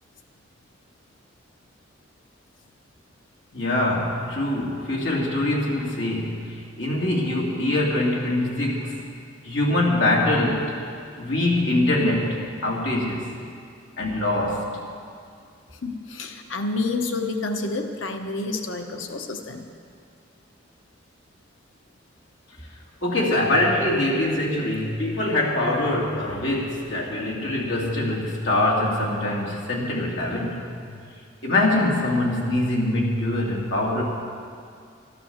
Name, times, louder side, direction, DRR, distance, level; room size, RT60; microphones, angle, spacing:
voice 1, 3.5-9.0 9.4-10.7 11.2-13.2 14.0-14.7 23.0-30.6 31.4-34.0, left 1 dB, 70° left, -3 dB, 2.8 m, -23 dB
voice 2, 15.8-19.6 30.9-31.0, left 3 dB, 85° left, 5 dB, 1.0 m, -29 dB
12.5 x 12.0 x 7.2 m, 2.3 s
head